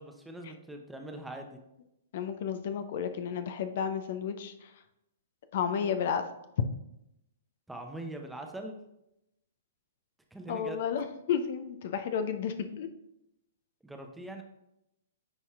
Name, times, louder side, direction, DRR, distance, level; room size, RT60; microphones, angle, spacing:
voice 1, 0.0-1.6 7.7-8.8 10.3-10.8 13.8-14.4, right 2 dB, 5° right, 3 dB, 0.7 m, -42 dB
voice 2, 2.1-4.8 5.5-6.3 10.5-12.9, left 7 dB, 55° left, 9 dB, 0.4 m, -32 dB
10.0 x 4.2 x 2.4 m, 0.85 s
figure-of-eight pair, 115°, 0 cm